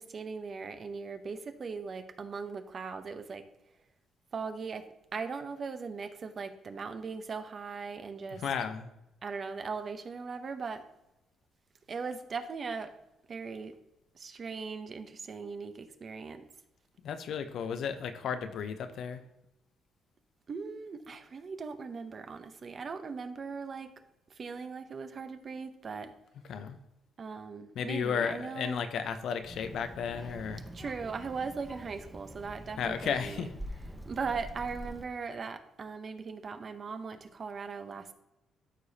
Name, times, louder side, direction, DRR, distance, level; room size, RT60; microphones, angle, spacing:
voice 1, 0.0-3.5 4.3-8.4 9.2-10.8 11.9-12.9 13.3-13.7 14.1-16.5 20.5-23.9 24.3-26.1 27.2-28.8 30.7-33.5 34.0-38.1, right 5 dB, 45° right, 9 dB, 0.8 m, -39 dB
voice 2, 8.3-8.9 17.0-19.2 26.5-26.8 27.7-30.6 32.8-33.5, left 7 dB, 70° left, 8 dB, 0.7 m, -34 dB
Child speech kid speaking, 29.4-35.0, equal, 5° right, 0.9 m, -45 dB
13.0 x 4.9 x 2.8 m, 0.89 s
cardioid pair, 90°, 0 cm